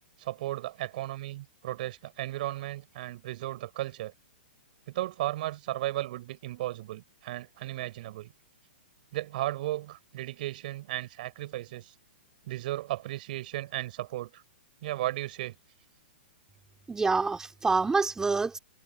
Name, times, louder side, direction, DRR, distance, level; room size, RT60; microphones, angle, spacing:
voice 1, 0.2-4.1 4.9-8.3 9.1-11.9 12.4-14.4 14.8-15.5, right 16 dB, 55° right, 6.1 m, -35 dB
voice 2, 16.9-18.6, right 4 dB, 10° right, 4.8 m, -26 dB
hypercardioid pair, 125°, 6 cm